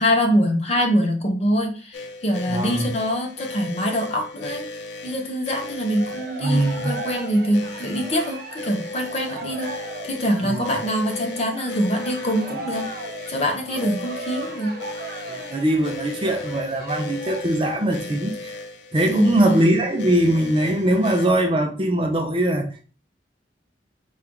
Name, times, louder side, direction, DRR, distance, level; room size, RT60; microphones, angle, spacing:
voice 1, 0.0-4.7 5.0-9.7 10.0-12.9 13.3-14.7 19.1-19.6, equal, 35° left, 0.8 m, -24 dB
sound 1, 1.9-21.3, left 2 dB, 90° left, 0.6 m, -36 dB
voice 2, 2.5-2.9 6.4-7.0 10.4-10.6 15.3-18.5 18.9-22.8, right 1 dB, 30° right, 0.6 m, -21 dB
Cheering, 5.6-17.4, right 2 dB, 55° right, 0.8 m, -37 dB
4.3 x 2.4 x 3.7 m
head